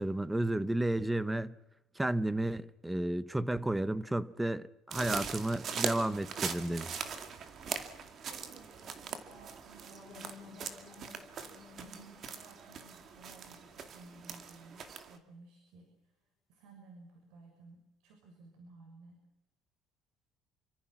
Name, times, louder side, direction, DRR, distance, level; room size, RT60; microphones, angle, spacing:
voice 1, 0.0-1.5 2.0-7.0, right 1 dB, 5° right, 0.9 m, -32 dB
sound 1, 4.9-15.2, right 6 dB, 35° right, 2.3 m, -41 dB
voice 2, 8.3-11.1 11.8-16.1 16.5-19.2, right 3 dB, 75° right, 7.2 m, -56 dB
sound 2, 9.9-14.8, left 7 dB, 30° left, 4.1 m, -57 dB
29.0 x 25.5 x 6.0 m
cardioid pair, 165°, 0 cm